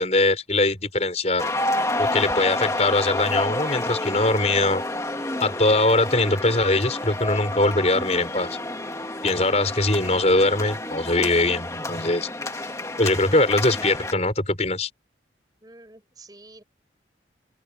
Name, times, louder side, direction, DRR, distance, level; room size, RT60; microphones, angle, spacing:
voice 1, 0.0-1.5 2.0-4.8 5.4-8.6 9.2-12.3 13.0-14.9, left 2 dB, 35° left, 5.7 m, -22 dB
sound 1, 1.4-14.1, left 2 dB, 15° left, 2.1 m, -29 dB
voice 2, 15.6-16.6, right 2 dB, 20° right, 5.1 m, -48 dB
open air
head